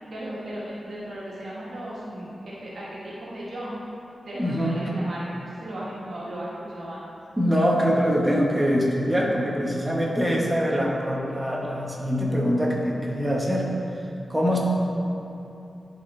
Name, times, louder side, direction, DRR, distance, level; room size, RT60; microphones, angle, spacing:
voice 1, 0.1-3.8 4.2-7.0, right 1 dB, 70° right, -7 dB, 1.4 m, -36 dB
voice 2, 4.4-4.8 7.4-13.7 14.3-14.6, equal, 10° right, -3 dB, 1.0 m, -23 dB
11.0 x 4.2 x 3.3 m, 2.8 s
wide cardioid pair, 115°, 0 cm